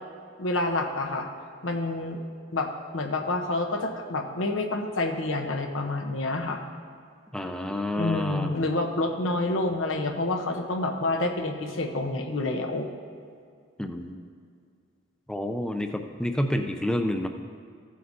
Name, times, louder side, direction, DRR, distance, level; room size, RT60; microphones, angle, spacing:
voice 1, 0.4-1.3 1.6-2.2 2.5-6.6 8.0-12.9, left 2 dB, 80° left, 4 dB, 0.9 m, -28 dB
voice 2, 7.3-8.5 13.8-14.2 15.3-17.3, left 1 dB, 5° left, 6 dB, 0.4 m, -29 dB
15.0 x 7.6 x 2.7 m, 2.2 s
head